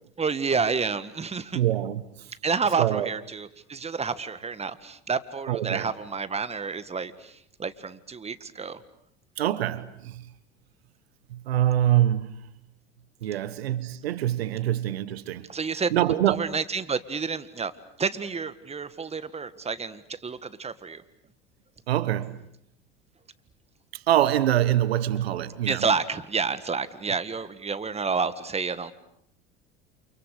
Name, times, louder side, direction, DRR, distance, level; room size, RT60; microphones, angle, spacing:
voice 1, 0.2-1.6 2.4-8.8 15.5-15.9 16.3-17.7 18.0-21.0 25.7-28.9, right 5 dB, 20° right, 1.8 m, -29 dB
voice 2, 1.5-2.0 2.8-3.1 5.5-5.9 9.4-10.3 11.3-12.4 13.2-15.5 15.9-16.6 21.9-22.4 23.9-25.8, right 12 dB, 85° right, 1.3 m, -25 dB
29.0 x 28.5 x 6.7 m
hypercardioid pair, 80°, 30 cm